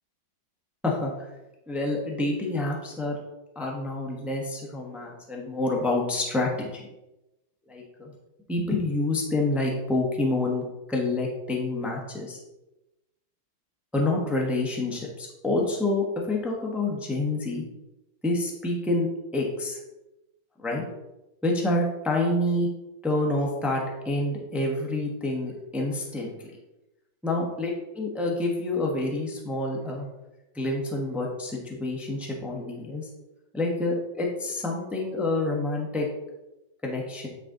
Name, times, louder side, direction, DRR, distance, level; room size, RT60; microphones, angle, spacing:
voice 1, 0.8-1.3 1.7-3.1 3.5-6.8 7.7-8.1 8.5-12.4 13.9-17.6 18.2-19.1 19.3-19.8 20.6-20.8 21.4-22.7 23.0-26.3 27.2-30.1 30.5-33.1 33.5-36.1 36.8-37.3, left 2 dB, ahead, -1 dB, 0.6 m, -28 dB
8.7 x 3.9 x 3.8 m, 0.99 s
omnidirectional pair, 2.0 m